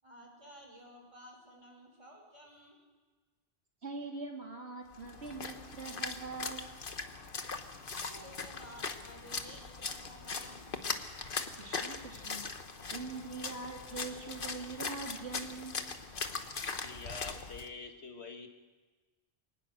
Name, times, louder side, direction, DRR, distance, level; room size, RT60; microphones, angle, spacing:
voice 1, 0.0-2.8 7.8-10.7, equal, 30° right, 1 dB, 5.3 m, -54 dB
voice 2, 3.8-6.8 11.6-12.4 12.9-15.8, right 4 dB, 85° right, 1 dB, 3.3 m, -43 dB
Splash splatter, 4.9-17.7, left 4 dB, 55° left, 1.4 m, -40 dB
voice 3, 16.8-18.5, left 4 dB, 85° left, 5 dB, 2.1 m, -46 dB
23.0 x 19.0 x 6.5 m, 1.3 s
omnidirectional pair, 1.1 m